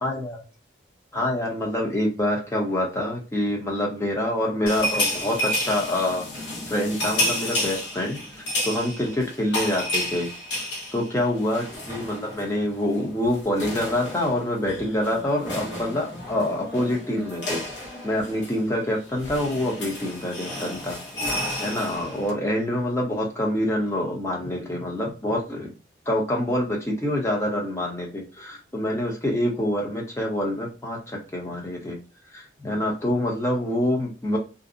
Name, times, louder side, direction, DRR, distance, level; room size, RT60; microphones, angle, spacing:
voice 1, 0.0-0.4 1.1-6.2 6.7-10.3 10.9-17.6 18.0-21.0 21.6-25.7 26.1-32.0 32.3-34.4, left 1 dB, 15° left, -2 dB, 0.7 m, -26 dB
sound 1, 4.7-12.5 12.8-13.0 13.2-22.3, left 1 dB, 70° left, 0.9 m, -31 dB
2.6 x 2.0 x 2.5 m, 0.32 s
head